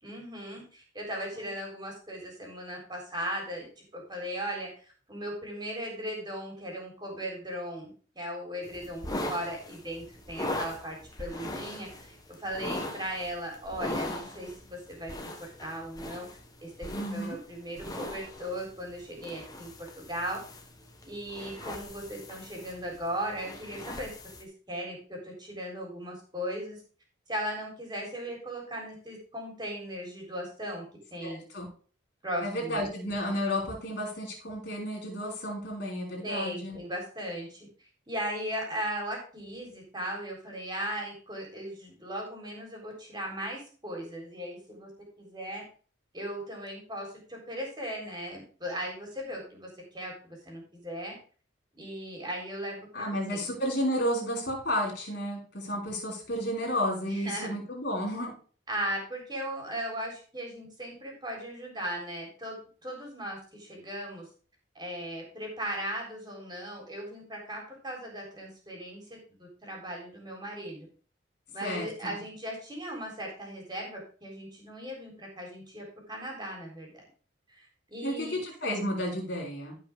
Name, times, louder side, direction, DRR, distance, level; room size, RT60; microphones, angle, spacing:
voice 1, 0.0-7.9 8.1-15.1 15.4-16.3 16.6-20.4 21.0-24.1 24.4-26.8 27.3-30.8 31.1-31.4 32.2-32.8 36.2-44.9 45.2-45.6 46.1-51.2 51.7-53.4 57.0-57.5 58.7-64.2 64.8-70.9 71.5-77.1 77.5-78.4, equal, 20° right, -1 dB, 3.9 m, -37 dB
sound 1, 8.6-24.4, left 1 dB, 20° left, 1.3 m, -40 dB
voice 2, 16.9-17.4 31.2-31.7 32.4-36.8 52.9-58.3 71.6-72.2 78.0-79.7, equal, 55° left, -1 dB, 5.2 m, -32 dB
15.5 x 5.8 x 3.6 m, 0.40 s
head